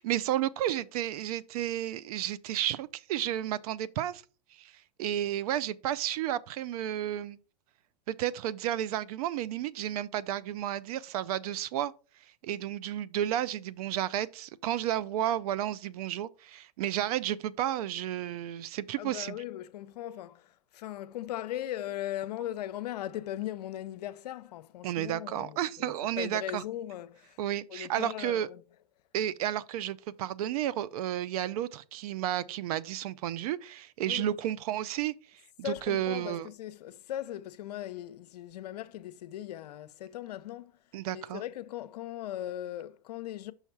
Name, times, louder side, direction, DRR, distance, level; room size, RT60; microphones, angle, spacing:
voice 1, 0.0-4.2 4.5-4.7 5.0-7.4 8.1-11.9 12.4-19.4 24.8-26.6 27.4-28.5 29.1-35.1 35.6-36.5 40.9-41.4, right 12 dB, 60° right, 0.5 m, -32 dB
voice 2, 19.0-27.4 27.7-28.6 34.1-34.4 35.6-40.7 41.1-43.5, left 12 dB, 75° left, 0.6 m, -39 dB
5.7 x 5.6 x 4.5 m
hypercardioid pair, 125°, 21 cm